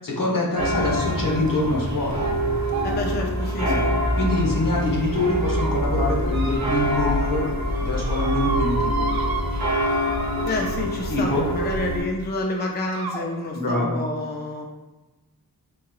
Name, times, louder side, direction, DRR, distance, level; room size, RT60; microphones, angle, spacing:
voice 1, 0.0-2.2 3.6-3.8 4.1-7.5 7.8-9.1 11.1-11.4 13.5-14.0, left 2 dB, 60° left, -2 dB, 0.9 m, -25 dB
sound 1, 0.6-12.0, equal, 45° right, 0.9 m, -25 dB
sound 2, 0.8-1.1 1.5-1.8 2.1-2.3 2.7-4.6 5.1-5.7 6.3-7.3 7.5-11.1 12.1-12.2 12.9-13.3, right 3 dB, 70° right, 0.7 m, -33 dB
voice 2, 2.8-3.9 10.4-14.7, left 2 dB, 30° left, 0 dB, 0.4 m, -29 dB
3.7 x 2.9 x 3.0 m, 1.1 s
wide cardioid pair, 90°, 37 cm